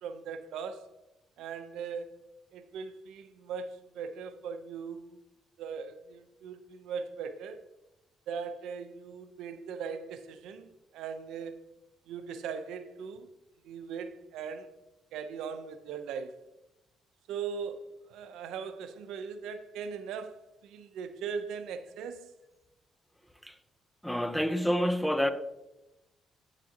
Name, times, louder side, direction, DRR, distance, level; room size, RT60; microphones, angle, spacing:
voice 1, 0.0-0.9 1.4-2.2 2.5-5.2 5.6-7.6 8.3-11.6 12.1-13.3 13.6-14.7 15.1-16.4 17.3-22.3, right 6 dB, 90° right, 0.6 m, -39 dB
voice 2, 24.0-25.3, equal, 5° left, 0.7 m, -28 dB
9.0 x 8.9 x 2.9 m
cardioid pair, 90°, 0 cm